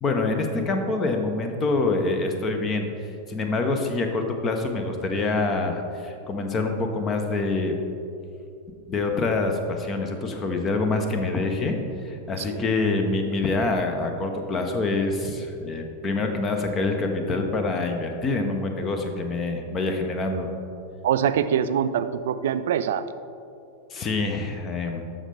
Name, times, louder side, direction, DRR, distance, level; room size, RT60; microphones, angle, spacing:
voice 1, 0.0-2.9 3.3-7.7 8.9-11.8 12.0-20.5 23.9-25.0, left 3 dB, 25° left, 5 dB, 0.9 m, -26 dB
voice 2, 21.0-23.0, right 8 dB, 60° right, 12 dB, 0.3 m, -24 dB
12.5 x 5.4 x 3.5 m, 2.6 s
figure-of-eight pair, 90°, 0 cm